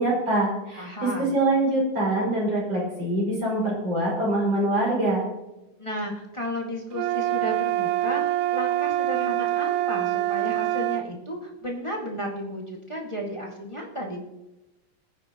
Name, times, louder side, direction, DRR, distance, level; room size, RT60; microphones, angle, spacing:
voice 1, 0.0-5.2, right 1 dB, 35° right, -4 dB, 6.5 m, -24 dB
voice 2, 0.8-1.4 5.8-14.2, equal, 15° left, -2 dB, 1.2 m, -33 dB
sound 1, 6.9-11.1, right 14 dB, 80° right, 2.0 m, -25 dB
22.0 x 9.8 x 3.0 m, 0.96 s
omnidirectional pair, 3.8 m